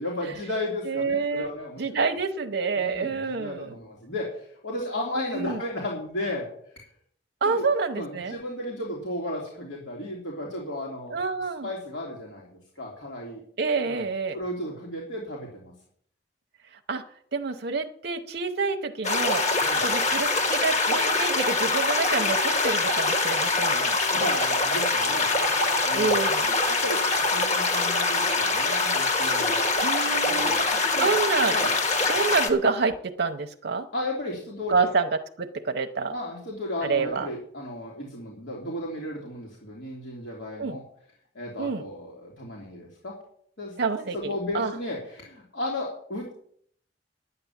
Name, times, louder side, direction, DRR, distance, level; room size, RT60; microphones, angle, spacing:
voice 1, 0.0-2.0 2.8-6.5 7.4-7.6 7.9-11.2 11.6-13.4 13.9-14.0 14.3-15.7 19.6-19.8 24.1-25.3 25.8-26.2 26.7-27.0 27.3-29.6 30.2-31.1 31.5-31.7 33.9-34.9 36.1-40.8 41.3-43.2 43.6-43.7 44.1-46.3, left 1 dB, 75° left, -3 dB, 3.1 m, -34 dB
voice 2, 0.9-1.5 1.8-3.7 5.3-5.6 7.4-8.4 11.1-11.7 13.6-14.4 16.9-17.0 17.3-19.4 19.8-24.0 25.9-26.5 29.8-30.6 31.0-31.6 32.1-33.9 34.7-35.1 35.4-36.1 36.8-37.3 40.6-40.8 41.6-41.8 43.8-44.7, right 4 dB, 60° right, 6 dB, 0.7 m, -27 dB
sound 1, 19.0-32.5, left 3 dB, 40° left, 1.8 m, -24 dB
10.5 x 9.5 x 7.2 m, 0.63 s
head